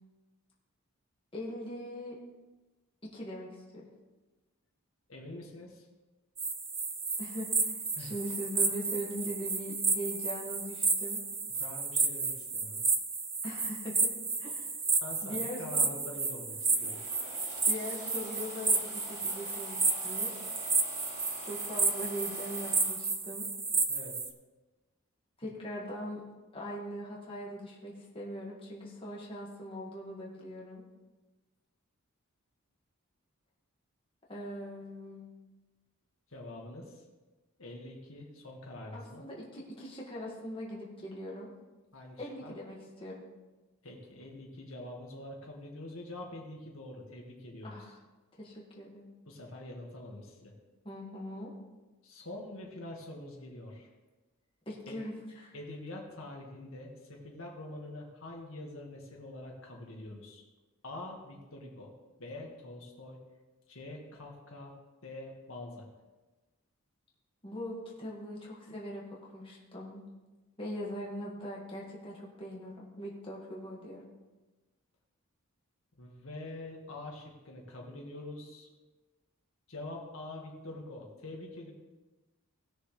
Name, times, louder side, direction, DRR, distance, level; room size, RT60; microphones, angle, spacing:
voice 1, 1.3-2.2 3.1-3.9 7.2-11.2 13.4-14.1 14.4-14.7 15.2-15.9 17.7-20.3 21.4-23.5 25.4-26.2 26.5-30.8 34.3-35.3 38.9-41.5 42.2-43.2 47.6-48.0 48.3-49.1 50.8-51.5 54.7-55.6 67.4-70.0 70.6-74.0, equal, 25° left, -4 dB, 1.9 m, -41 dB
voice 2, 5.1-5.9 8.0-8.1 11.6-12.8 15.0-17.0 23.9-24.1 36.3-37.0 37.6-39.2 41.9-42.5 43.8-47.8 49.3-50.5 52.0-53.9 54.9-55.0 55.5-60.4 60.8-61.9 62.2-63.2 63.7-64.7 65.0-65.9 76.0-78.7 79.7-81.7, left 1 dB, 70° left, -1 dB, 1.9 m, -45 dB
sound 1, 6.4-24.3, right 4 dB, 10° right, 0.5 m, -32 dB
sound 2, 16.5-23.0, left 3 dB, 50° left, 2.3 m, -48 dB
18.5 x 6.7 x 3.3 m, 1.2 s
head